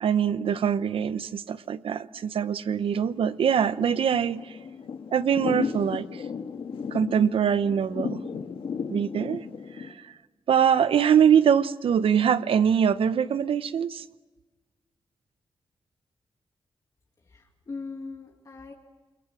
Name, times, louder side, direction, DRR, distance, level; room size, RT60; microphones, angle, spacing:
voice 1, 0.0-4.6 5.1-6.2 6.9-8.2 8.9-9.4 10.0-10.1 10.5-14.0, right 8 dB, 85° right, 14 dB, 0.9 m, -23 dB
Thunder / Rain, 2.9-9.9, left 6 dB, 75° left, 1.8 m, -35 dB
voice 2, 17.3-18.7, left 4 dB, 40° left, 1 dB, 2.2 m, -40 dB
28.5 x 22.0 x 6.1 m, 1.2 s
wide cardioid pair, 135°, 9 cm